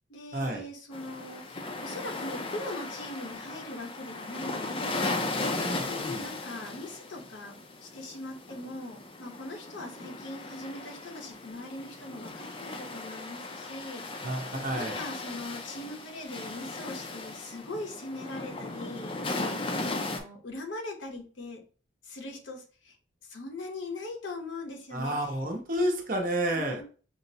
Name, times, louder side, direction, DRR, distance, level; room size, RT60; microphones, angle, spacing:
voice 1, 0.1-21.6 22.0-23.0 23.2-25.4 26.5-26.8, left 2 dB, 90° left, 2 dB, 0.9 m, -41 dB
sound 1, 0.9-20.2, left 2 dB, 30° left, 0.4 m, -37 dB
voice 2, 5.6-6.2 14.2-15.0 24.9-26.8, right 1 dB, 45° right, 2 dB, 0.8 m, -30 dB
5.6 x 2.1 x 2.8 m, 0.39 s
head